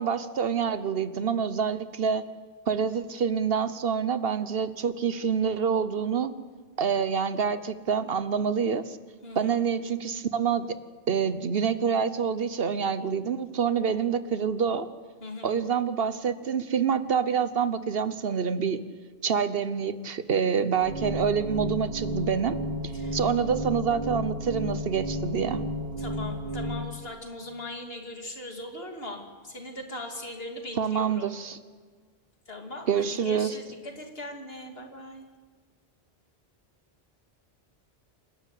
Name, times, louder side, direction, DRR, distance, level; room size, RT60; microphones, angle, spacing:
voice 1, 0.0-2.3 2.7-6.3 6.8-9.0 9.4-10.7 11.1-14.9 15.4-18.8 19.2-22.6 23.1-25.6 30.8-31.6 32.9-33.5, right 6 dB, 65° right, 13 dB, 1.1 m, -27 dB
voice 2, 9.2-9.6 15.2-15.6 22.9-23.2 26.0-31.3 32.5-35.3, left 1 dB, 70° left, 3 dB, 2.9 m, -40 dB
sound 1, 20.8-26.8, equal, 85° right, 2.5 m, -32 dB
27.5 x 12.5 x 8.3 m, 1.5 s
omnidirectional pair, 1.1 m